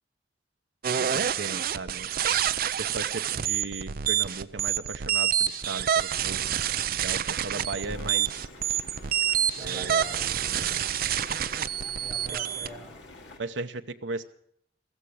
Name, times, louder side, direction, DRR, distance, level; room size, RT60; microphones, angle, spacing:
sound 1, 0.8-12.7, right 9 dB, 55° right, 0.6 m, -28 dB
voice 1, 1.0-2.4 2.8-6.5 6.9-8.4 9.6-10.2 10.5-10.8 11.2-11.4 12.3-12.4 13.4-14.2, right 3 dB, 85° right, 7 dB, 0.8 m, -37 dB
sound 2, 7.8-13.4, left 2 dB, 85° left, 2.6 m, -48 dB
voice 2, 9.5-10.8 11.8-13.0, equal, ahead, -1 dB, 6.4 m, -44 dB
15.5 x 14.5 x 6.3 m, 0.70 s
head